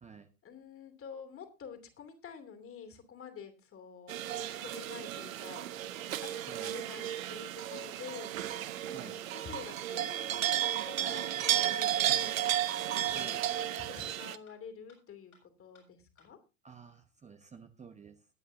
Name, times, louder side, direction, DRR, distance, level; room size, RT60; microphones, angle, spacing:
voice 1, 0.4-5.7 6.2-12.4 12.9-16.4, left 6 dB, 30° left, 7 dB, 2.8 m, -49 dB
sound 1, 4.1-14.4, right 12 dB, 70° right, 0.9 m, -33 dB
sound 2, 11.5-11.6 11.9-12.0 12.3-12.4 12.7-12.8 13.2-13.3 13.6-13.7 14.0-14.1 14.5-14.6 14.9-15.0 15.3-15.4 15.7-15.8 16.2-16.3, left 5 dB, 85° left, 6.8 m, -62 dB
voice 2, 16.6-18.3, right 5 dB, 15° right, 7 dB, 1.0 m, -51 dB
20.5 x 9.2 x 2.7 m, 0.29 s
figure-of-eight pair, 75°, 42 cm